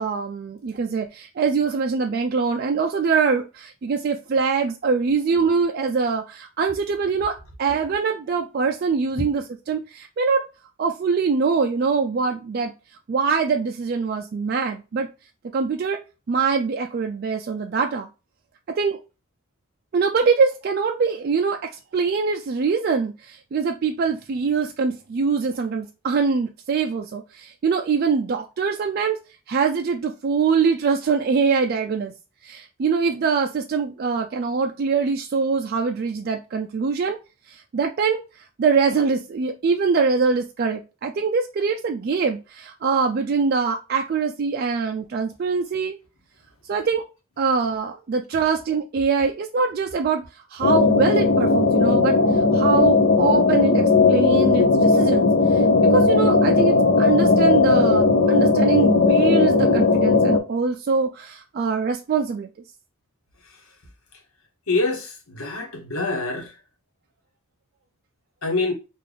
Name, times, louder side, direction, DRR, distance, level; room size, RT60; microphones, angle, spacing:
voice 1, 0.0-10.5 10.8-12.7 13.1-15.1 15.5-16.0 16.3-18.1 18.7-19.0 19.9-29.2 29.5-32.1 32.4-37.2 37.5-38.2 38.6-46.0 46.6-47.0 47.4-50.2 50.5-62.5, right 5 dB, 45° right, 0.3 m, -23 dB
sound 1, 50.6-60.4, left 3 dB, 60° left, 0.5 m, -17 dB
voice 2, 64.7-66.5 68.4-68.7, left 3 dB, 90° left, 1.1 m, -25 dB
3.9 x 2.4 x 3.2 m
head